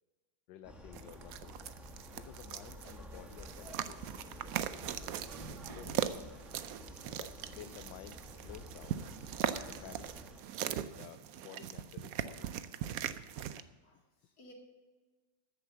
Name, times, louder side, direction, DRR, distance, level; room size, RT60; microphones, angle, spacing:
voice 1, 0.5-1.6 2.1-5.3 5.7-6.3 7.1-9.0 9.6-10.1 10.6-12.8, left 11 dB, 80° left, 10 dB, 1.2 m, -53 dB
sound 1, 0.6-10.4, equal, ahead, 1.0 m, -51 dB
Plugging in, 0.8-11.6, right 1 dB, 15° left, 1.9 m, -59 dB
sound 2, 0.9-13.6, right 10 dB, 75° right, 0.8 m, -40 dB
voice 2, 13.8-14.5, left 1 dB, 50° left, 0 dB, 2.7 m, -60 dB
13.0 x 7.1 x 7.5 m, 1.3 s
omnidirectional pair, 2.0 m